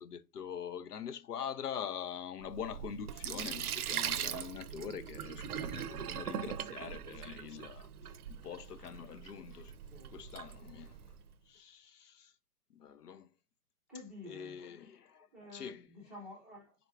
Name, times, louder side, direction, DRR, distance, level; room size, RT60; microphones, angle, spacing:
voice 1, 0.0-9.7 10.1-11.0 11.5-12.3 12.7-13.3 14.2-15.9, left 8 dB, 80° left, 0.7 m, -44 dB
Sink (filling or washing), 2.4-11.2, right 9 dB, 70° right, 0.6 m, -41 dB
voice 2, 9.9-10.2 13.9-14.6 15.3-16.7, left 2 dB, ahead, 0.5 m, -50 dB
4.4 x 3.9 x 2.3 m
hypercardioid pair, 135°, 47 cm